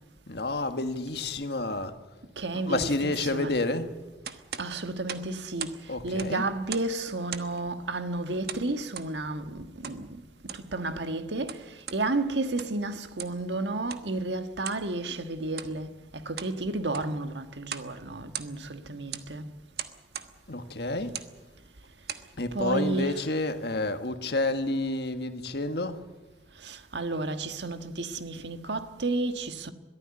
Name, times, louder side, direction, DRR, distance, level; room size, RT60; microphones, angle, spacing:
voice 1, 0.3-1.9 2.7-3.9 5.9-6.5 20.5-21.1 22.4-26.0, left 2 dB, 65° left, 1.5 m, -29 dB
voice 2, 2.4-3.5 4.6-5.7 6.0-10.1 10.7-11.6 11.9-19.5 22.5-23.2 26.6-29.7, right 2 dB, 80° right, 1.5 m, -32 dB
sound 1, 4.2-5.8 6.1-7.0 7.3-7.6 8.5-9.1 9.8-10.0 10.4-10.7 11.3-12.0 12.4-12.8 13.2-13.4 13.9-14.1 14.6-14.9 15.5-15.7 16.2-16.6 16.9-17.2 17.6-17.9 18.2-18.7 19.1-19.3 19.8-20.3 21.0-21.3 21.9-22.3, right 8 dB, 60° right, 1.3 m, -39 dB
22.0 x 14.5 x 9.8 m
head